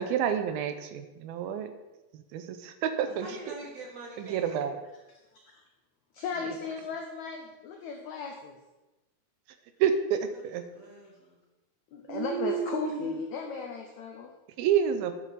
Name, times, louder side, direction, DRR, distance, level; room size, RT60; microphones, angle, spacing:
voice 1, 0.0-1.7 2.1-3.6 4.2-4.7 9.8-10.6 12.1-13.0 14.6-15.1, right 8 dB, 80° right, 9 dB, 2.5 m, -29 dB
voice 2, 3.2-4.7 10.3-11.4, right 2 dB, 60° right, 0 dB, 1.9 m, -45 dB
voice 3, 6.1-8.6 11.9-14.3, left 5 dB, 80° left, 3 dB, 1.6 m, -36 dB
9.2 x 8.8 x 4.1 m, 1.1 s
omnidirectional pair, 4.3 m